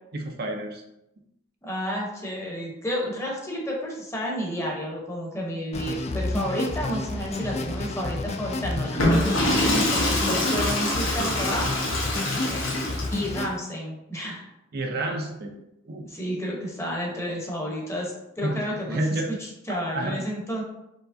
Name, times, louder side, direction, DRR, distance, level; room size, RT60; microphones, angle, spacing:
voice 1, 0.1-0.8 14.7-15.5 15.8-16.0 18.4-19.3 19.7-20.2, right 1 dB, 50° right, 2 dB, 0.5 m, -29 dB
voice 2, 1.6-11.7 13.1-14.5 16.1-20.6, equal, 15° left, -2 dB, 0.9 m, -31 dB
sound 1, 5.7-13.5, left 2 dB, 35° left, 0.3 m, -30 dB
Water / Toilet flush, 8.8-13.3, left 1 dB, 85° left, 1.1 m, -25 dB
4.6 x 3.1 x 2.6 m, 0.89 s
head